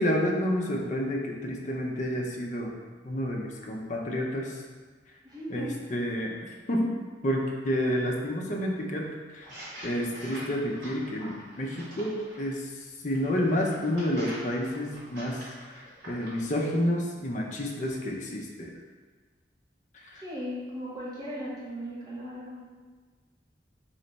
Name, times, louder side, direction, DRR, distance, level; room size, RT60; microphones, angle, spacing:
voice 1, 0.0-2.7 3.0-4.6 5.5-6.3 6.7-6.9 7.2-9.5 9.8-18.7 20.0-20.2, equal, 45° left, -1 dB, 0.6 m, -30 dB
voice 2, 5.2-5.8 20.2-22.6, equal, 25° right, -8 dB, 1.1 m, -37 dB
sound 1, 9.4-12.5 13.1-16.4, equal, 90° right, 1.4 m, -45 dB
3.2 x 3.2 x 4.0 m, 1.4 s
head